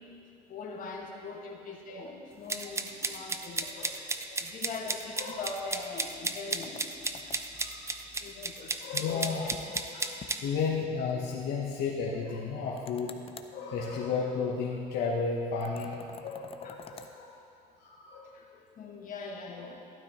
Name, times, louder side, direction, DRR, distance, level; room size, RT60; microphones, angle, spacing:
voice 1, 0.0-3.7 4.3-7.5 8.1-8.7 9.4-9.6 9.9-10.3 16.6-17.0 18.2-19.8, left 4 dB, 55° left, -1 dB, 1.7 m, -42 dB
sound 1, 2.5-10.4, right 3 dB, 15° right, 0.5 m, -33 dB
voice 2, 3.7-4.2 5.2-5.4 7.6-7.8 8.8-13.2 13.5-17.4 17.8-18.3 19.5-19.6, left 5 dB, 75° left, -3 dB, 1.0 m, -33 dB
sound 2, 6.6-7.7 9.5-9.9 10.2-10.3 10.7-10.8 12.8-13.6 15.6-17.1, left 6 dB, 35° left, 0.6 m, -47 dB
12.0 x 12.0 x 3.0 m, 2.4 s
cardioid pair, 110°, 17 cm